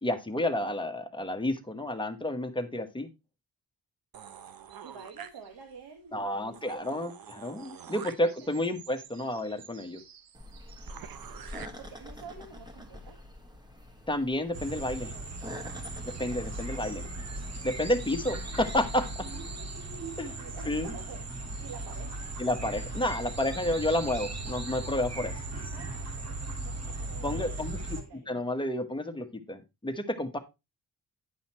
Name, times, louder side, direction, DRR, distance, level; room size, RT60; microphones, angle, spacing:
voice 1, 0.0-3.1 6.1-10.0 14.1-15.1 16.0-17.0 17.6-19.1 20.2-20.4 20.7-20.9 22.4-25.3 27.2-28.0 28.3-30.4, left 1 dB, 15° left, 5 dB, 1.4 m, -30 dB
sound 1, 4.1-5.8 6.2-6.3 6.5-11.7, right 8 dB, 65° right, 0.9 m, -47 dB
voice 2, 4.8-7.0 8.1-8.5 11.5-13.2 15.1-15.2 19.8-22.2 25.7-27.7 27.9-28.4, right 6 dB, 90° right, 4 dB, 1.8 m, -49 dB
sound 2, 10.3-19.1, left 1 dB, 10° right, 1.7 m, -46 dB
sound 3, 14.5-28.0, right 2 dB, 45° right, 2.0 m, -38 dB
9.8 x 5.6 x 4.4 m, 0.25 s
cardioid pair, 90°, 38 cm